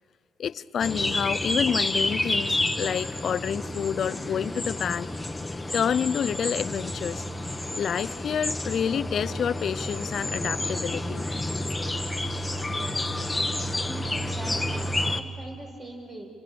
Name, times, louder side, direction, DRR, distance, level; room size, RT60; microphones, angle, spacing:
voice 1, 0.4-5.1 5.7-7.2 7.8-11.2, left 8 dB, 60° left, 17 dB, 0.6 m, -28 dB
sound 1, 0.8-15.2, left 1 dB, 10° left, 1.5 m, -30 dB
voice 2, 12.7-13.2 13.7-16.3, right 1 dB, 30° right, 1 dB, 7.0 m, -42 dB
28.5 x 28.0 x 7.0 m, 2.2 s
cardioid pair, 90°, 0 cm